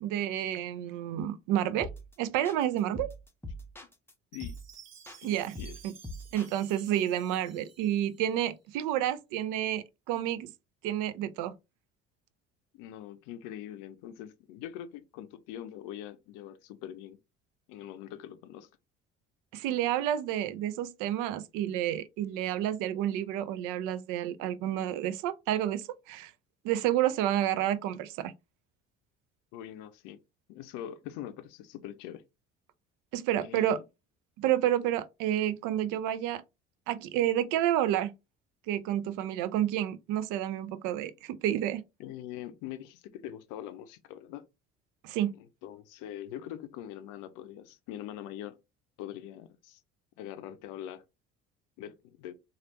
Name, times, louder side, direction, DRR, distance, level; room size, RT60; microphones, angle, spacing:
voice 1, 0.0-1.9 2.2-3.1 5.2-5.6 5.8-5.9 6.3-10.5 10.8-11.6 19.5-26.3 26.6-28.3 33.1-33.8 34.4-36.4 36.9-38.1 38.7-41.8 45.0-45.3, right 11 dB, 65° right, 0.5 m, -30 dB
sound 1, 1.8-2.1 2.4-4.1 4.4-4.8 5.1-6.9, left 1 dB, 5° left, 0.7 m, -42 dB
Chime, 4.3-8.5, right 7 dB, 50° right, 0.9 m, -54 dB
voice 2, 5.2-5.8 12.7-17.2 17.7-18.7 29.5-30.2 30.5-32.2 33.4-33.8 42.0-44.5 45.4-48.6 49.0-49.8 50.2-51.0 51.8-52.3, left 11 dB, 65° left, 0.5 m, -43 dB
3.2 x 2.4 x 2.8 m
hypercardioid pair, 60°, 33 cm